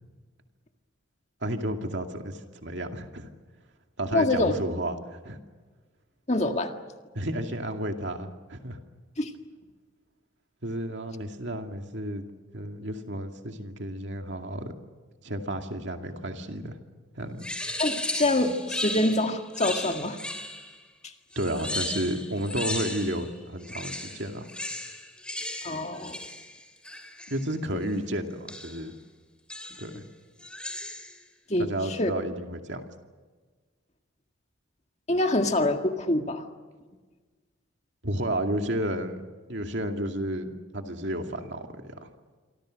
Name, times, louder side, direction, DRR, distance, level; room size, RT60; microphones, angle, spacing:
voice 1, 1.4-3.3 4.0-5.4 7.1-8.8 10.6-12.2 12.5-14.7 15.2-16.7 17.2-17.5 21.4-24.5 27.3-28.9 29.8-30.0 31.6-32.8 38.0-39.2 39.5-42.0, right 1 dB, 60° right, 4 dB, 2.3 m, -32 dB
voice 2, 4.1-4.5 6.3-6.7 9.2-9.3 17.8-20.2 21.0-21.1 25.6-26.2 27.7-27.8 31.5-32.1 35.1-36.5, left 1 dB, 35° left, 4 dB, 1.8 m, -25 dB
sound 1, 17.4-20.8 21.3-23.3 23.6-27.4 28.5-28.8 29.5-30.0 30.4-31.2, left 1 dB, 5° left, 2.9 m, -35 dB
27.5 x 24.5 x 6.5 m, 1.4 s
head